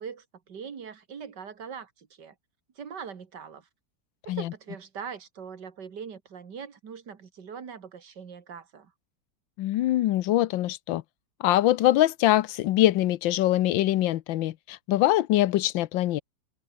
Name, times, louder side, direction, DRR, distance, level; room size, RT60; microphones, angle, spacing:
voice 1, 0.0-2.3 2.8-3.7 4.3-8.9, right 6 dB, 65° right, 2.5 m, -41 dB
voice 2, 9.6-11.0 11.4-16.2, left 14 dB, 90° left, 1.5 m, -23 dB
omnidirectional pair, 2.0 m